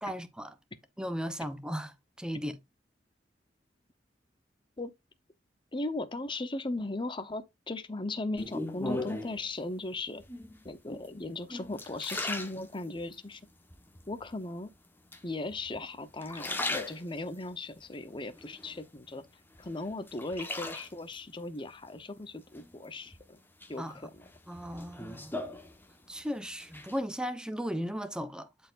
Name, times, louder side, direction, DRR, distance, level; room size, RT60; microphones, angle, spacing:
voice 1, 0.0-0.5 1.0-2.6 23.8-23.9 24.5-25.4 26.1-28.5, equal, 5° right, 0.8 m, -36 dB
voice 2, 5.7-10.2 10.6-13.4 14.1-14.7 15.2-19.2 19.6-23.4 23.7-24.2, left 2 dB, 25° left, 0.9 m, -37 dB
sound 1, 8.4-9.4 10.2-10.7 11.2-13.2 13.7-14.3 15.1-15.8 16.1-17.5 17.9-19.2 19.6-21.2 22.6-23.2 23.6-26.2 26.5-27.0, left 2 dB, 10° left, 1.2 m, -38 dB
12.0 x 4.5 x 2.5 m
head